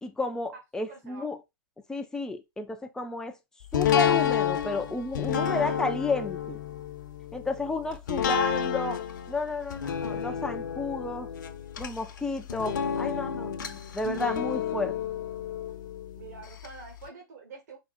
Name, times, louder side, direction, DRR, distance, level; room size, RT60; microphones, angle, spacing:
voice 1, 0.0-1.4 1.9-3.4 3.7-6.6 7.3-9.0 9.3-11.3 11.8-15.0, left 2 dB, 5° left, 0.5 m, -32 dB
voice 2, 0.9-1.3 16.2-17.8, right 4 dB, 45° right, 1.4 m, -46 dB
sound 1, 3.7-16.7 17.1-17.2, left 8 dB, 55° left, 0.8 m, -30 dB
5.0 x 2.4 x 4.1 m
figure-of-eight pair, 115°, 12 cm